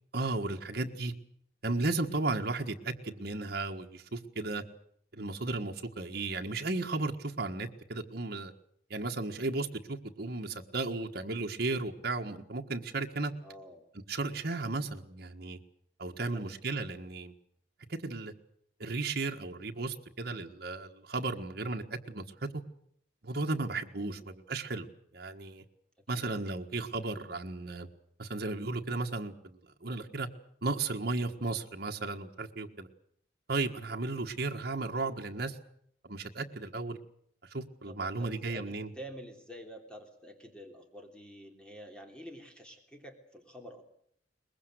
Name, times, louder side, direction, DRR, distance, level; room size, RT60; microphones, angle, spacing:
voice 1, 0.1-1.1 1.6-4.6 5.1-8.5 8.9-13.3 14.1-15.6 16.0-17.3 17.9-18.3 18.8-22.5 23.2-24.9 25.1-25.6 26.1-27.9 28.2-30.3 30.6-32.9 33.5-35.6 36.0-37.0 37.5-38.9, right 3 dB, 60° right, 2 dB, 1.6 m, -35 dB
voice 2, 13.4-13.8 16.1-16.6 23.9-24.3 26.1-26.5 37.8-43.8, equal, 5° left, 3 dB, 3.2 m, -49 dB
23.0 x 21.0 x 8.0 m, 0.67 s
head